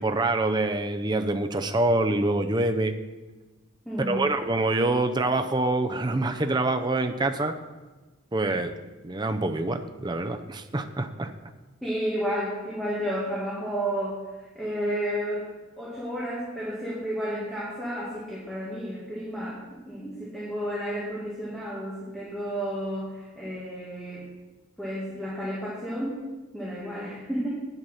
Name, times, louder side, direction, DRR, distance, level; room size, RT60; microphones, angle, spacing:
voice 1, 0.0-2.9 4.1-7.5 8.3-8.7 9.0-11.3, right 2 dB, 20° right, 7 dB, 0.5 m, -25 dB
voice 2, 3.9-4.2 11.8-15.5 15.8-24.3 24.8-26.2 26.5-27.5, equal, ahead, -7 dB, 2.0 m, -32 dB
8.7 x 8.0 x 5.6 m, 1.2 s
head